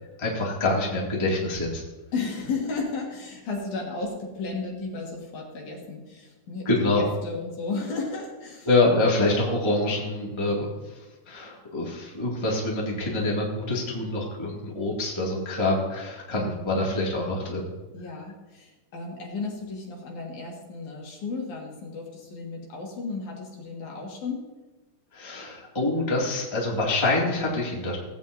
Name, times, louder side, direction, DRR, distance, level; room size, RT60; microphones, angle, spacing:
voice 1, 0.2-1.8 6.6-7.0 8.6-17.7 25.1-28.0, left 2 dB, 10° left, -3 dB, 1.3 m, -26 dB
voice 2, 2.1-6.7 7.0-8.7 17.9-24.5, left 4 dB, 65° left, -1 dB, 3.0 m, -34 dB
16.5 x 8.5 x 2.6 m, 1.2 s
omnidirectional pair, 3.9 m